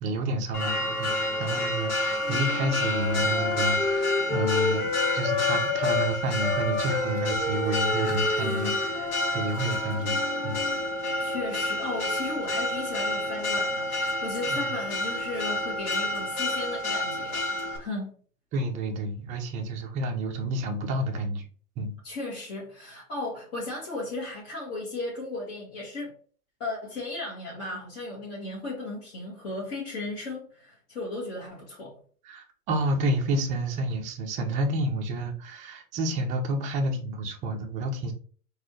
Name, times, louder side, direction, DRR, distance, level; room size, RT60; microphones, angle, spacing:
voice 1, 0.0-4.9 5.1-9.1 9.3-10.6 14.5-14.7 18.5-21.4 21.8-22.0 32.2-38.1, right 1 dB, 15° right, 0.4 m, -30 dB
Church bell, 0.5-17.8, left 1 dB, 70° left, 1.3 m, -29 dB
sound 1, 2.2-6.1 6.4-10.8, left 4 dB, 25° left, 1.0 m, -31 dB
voice 2, 8.4-8.7 11.2-17.4 17.8-18.1 22.0-26.1 26.6-32.0, left 2 dB, 45° left, 1.8 m, -35 dB
3.9 x 2.7 x 3.0 m
hypercardioid pair, 105°, 46 cm